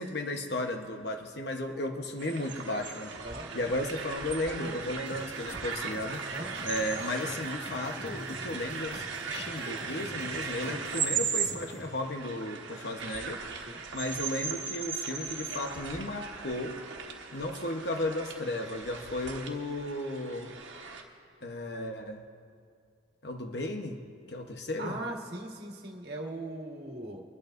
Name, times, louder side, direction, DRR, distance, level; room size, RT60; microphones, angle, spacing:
voice 1, 0.0-3.2 3.5-6.2 6.6-13.4 13.9-16.8 17.3-20.5 21.4-22.3 23.2-24.0 24.3-25.0, left 1 dB, 60° left, 4 dB, 1.0 m, -34 dB
sound 1, 2.2-21.0, right 6 dB, 85° right, 1.3 m, -38 dB
voice 2, 3.2-3.7 4.6-4.8 6.3-6.5 8.1-8.3 13.7-13.8 24.8-27.2, right 1 dB, 60° right, 0 dB, 1.6 m, -39 dB
sound 2, 5.1-11.9, equal, 35° left, 2.0 m, -47 dB
25.5 x 12.0 x 2.6 m, 2.2 s
head